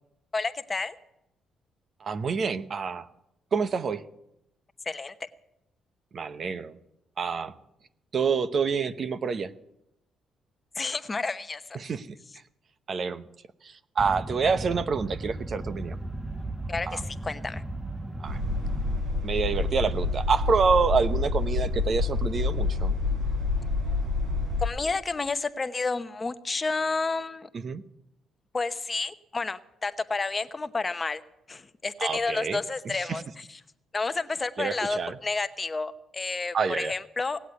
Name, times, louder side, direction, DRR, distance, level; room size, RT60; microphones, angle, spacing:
voice 1, 0.3-1.0 4.8-5.1 10.7-11.8 16.7-17.6 24.6-27.5 28.5-31.2 31.5-33.6 33.9-37.4, left 3 dB, 30° left, 11 dB, 0.9 m, -30 dB
voice 2, 2.0-3.1 3.5-4.0 6.1-6.7 7.2-7.5 8.1-9.5 11.7-12.1 12.9-13.3 13.6-16.0 16.9-17.0 18.2-18.4 19.2-23.0 27.5-27.8 32.0-32.6 32.9-33.2 34.6-35.2 36.5-36.9, right 5 dB, 50° right, 12 dB, 0.8 m, -27 dB
sound 1, 14.0-19.0, right 2 dB, 5° right, 0.8 m, -36 dB
sound 2, 18.2-24.6, left 3 dB, 80° right, 4.9 m, -27 dB
18.0 x 8.2 x 9.6 m, 0.85 s
cardioid pair, 90°, 0 cm